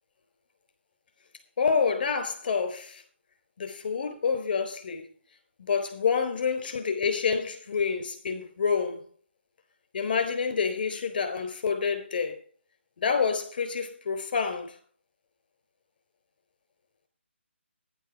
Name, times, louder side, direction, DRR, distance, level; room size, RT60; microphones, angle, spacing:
voice 1, 1.6-3.0 3.6-5.0 5.6-9.0 9.9-12.4 13.0-14.8, left 5 dB, 45° left, 4.2 m, -28 dB
11.0 x 10.5 x 5.0 m
hypercardioid pair, 160°, 7 cm